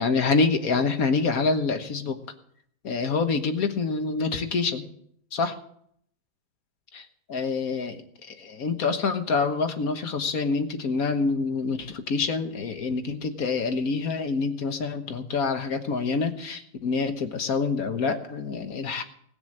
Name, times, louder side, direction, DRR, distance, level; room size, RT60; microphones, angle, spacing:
voice 1, 0.0-2.2 2.8-4.8 5.3-5.5 6.9-8.0 8.3-19.0, left 4 dB, 50° left, 6 dB, 1.5 m, -26 dB
19.0 x 7.0 x 7.7 m, 0.67 s
omnidirectional pair, 2.3 m